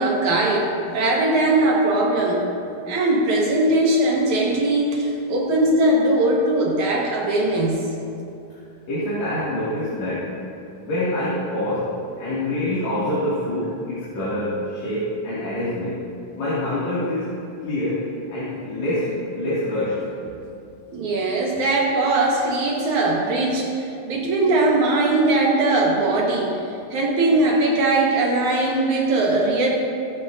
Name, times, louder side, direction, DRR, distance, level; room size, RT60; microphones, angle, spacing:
voice 1, 0.0-2.4 2.9-7.9 20.9-26.6 26.9-29.7, right 2 dB, 65° right, -2 dB, 2.5 m, -20 dB
voice 2, 8.9-10.3 10.8-11.9 12.2-16.0 16.4-17.3 17.6-20.0, left 1 dB, 60° left, -10 dB, 3.3 m, -26 dB
21.0 x 8.5 x 2.6 m, 2.6 s
omnidirectional pair, 3.8 m